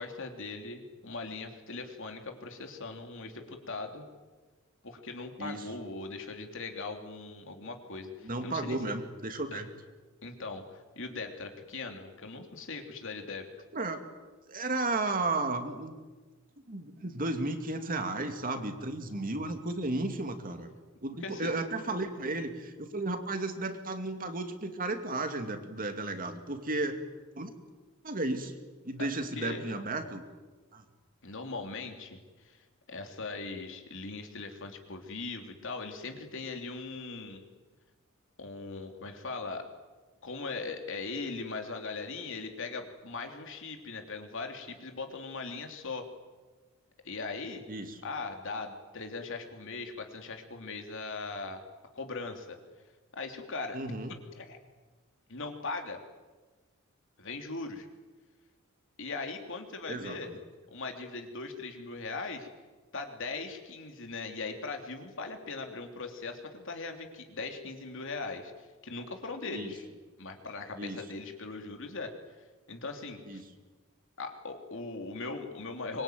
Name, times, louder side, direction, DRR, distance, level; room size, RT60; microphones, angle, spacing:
voice 1, 0.0-4.0 4.8-8.8 9.5-9.6 10.2-13.5 21.2-21.5 29.3-29.7 31.2-32.2 32.4-32.6 32.9-37.4 38.4-39.7 40.2-46.1 47.0-47.6 48.0-51.6 51.9-52.6 53.1-53.8 54.1-54.6 55.3-56.0 57.2-57.9 59.0-60.3 60.7-62.5 62.9-68.5 68.8-69.8 70.2-72.1 72.7-73.4 74.2-76.0, left 3 dB, 65° left, 4 dB, 3.4 m, -39 dB
voice 2, 8.2-9.7 13.7-14.0 14.5-15.9 16.7-20.7 21.0-27.0 27.3-27.5 28.0-28.5 28.8-30.2 30.7-30.8 47.7-48.0 53.7-54.1 59.9-60.2 69.5-69.7 70.8-71.0 73.2-73.4, right 2 dB, 40° right, 6 dB, 2.6 m, -34 dB
24.5 x 23.0 x 9.4 m, 1.3 s
head